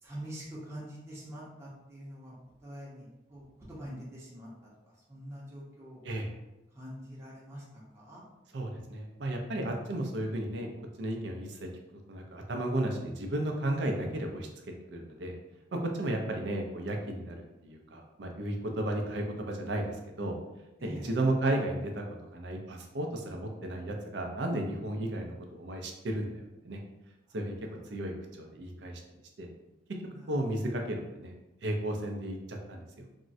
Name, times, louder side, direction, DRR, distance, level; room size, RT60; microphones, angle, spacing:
voice 1, 0.0-2.3 2.6-4.5 5.1-6.0 6.7-8.2 20.8-21.2 27.3-27.4 30.1-30.3, equal, 15° right, -6 dB, 0.7 m, -45 dB
voice 2, 8.5-10.7 11.0-11.7 12.1-14.5 14.9-15.3 15.7-20.4 20.8-22.0 22.3-26.8 27.3-27.5 27.9-29.0 29.4-29.5 30.3-31.3 31.6-33.0, right 1 dB, 70° right, 2 dB, 0.5 m, -33 dB
3.5 x 2.1 x 2.6 m, 0.99 s
head